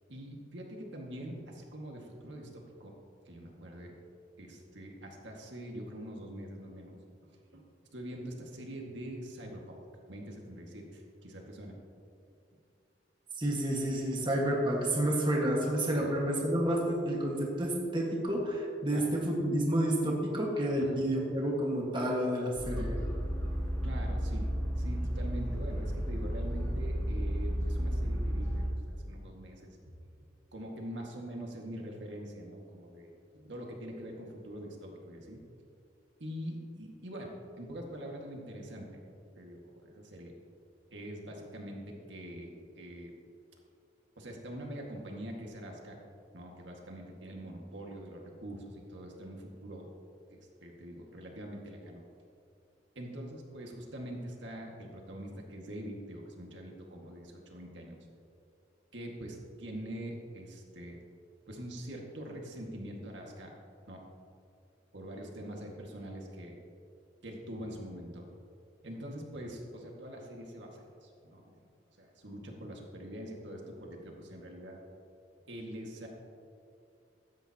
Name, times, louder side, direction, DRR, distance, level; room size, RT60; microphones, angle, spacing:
voice 1, 0.1-2.9 3.3-3.9 4.4-7.0 7.5-7.6 7.9-9.8 10.1-11.8 15.9-16.1 18.9-19.1 20.8-21.0 23.8-28.7 29.0-30.0 30.5-35.4 36.2-38.9 39.4-40.3 40.9-43.1 44.2-46.0 46.3-49.9 50.3-52.0 53.0-58.0 58.9-61.0 61.5-63.5 63.9-64.0 64.9-66.5 67.2-68.2 68.8-71.5 72.0-74.8 75.5-76.1, equal, 70° right, 0 dB, 2.0 m, -44 dB
voice 2, 13.4-23.0, right 1 dB, 25° right, -2 dB, 1.7 m, -30 dB
sound 1, 22.6-28.7, equal, 15° left, 2.3 m, -33 dB
16.0 x 13.5 x 2.9 m, 2.4 s
head